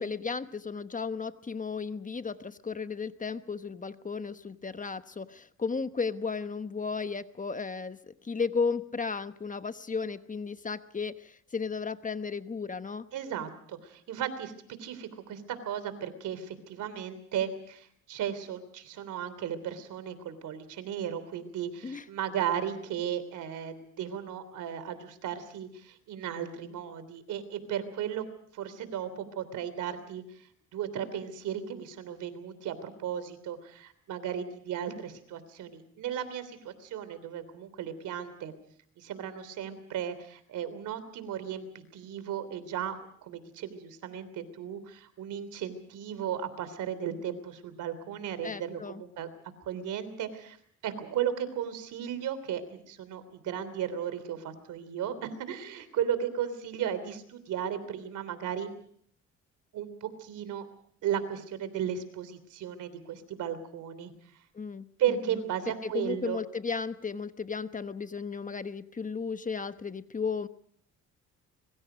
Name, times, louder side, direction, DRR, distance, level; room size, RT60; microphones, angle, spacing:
voice 1, 0.0-13.1 21.8-22.0 48.4-49.0 64.5-64.9 65.8-70.5, left 5 dB, 25° left, 11 dB, 1.1 m, -34 dB
voice 2, 13.1-14.5 14.8-28.3 28.5-30.5 30.7-38.5 39.0-43.0 43.2-49.3 49.6-50.6 50.8-58.7 59.7-60.7 61.0-64.1 65.0-66.4, right 9 dB, 80° right, 13 dB, 3.3 m, -35 dB
25.5 x 23.0 x 5.1 m, 0.63 s
cardioid pair, 90°, 30 cm